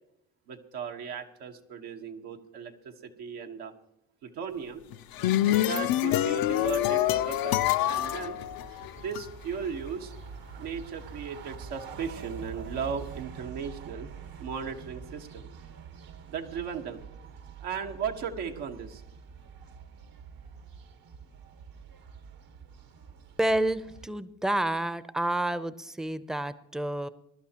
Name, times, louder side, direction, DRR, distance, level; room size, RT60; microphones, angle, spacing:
voice 1, 0.5-3.7 4.2-4.8 5.6-8.4 8.9-10.1 10.6-14.1 14.4-15.5 16.3-17.0 17.6-19.0, right 6 dB, 80° right, 3 dB, 1.4 m, -37 dB
sound 1, 4.9-9.2, left 13 dB, 65° left, 0.6 m, -26 dB
sound 2, 6.4-24.1, right 6 dB, 60° right, 1.3 m, -46 dB
voice 2, 23.4-27.1, right 1 dB, ahead, 15 dB, 0.6 m, -29 dB
22.0 x 11.5 x 2.9 m, 0.83 s
supercardioid pair, 65°, 39 cm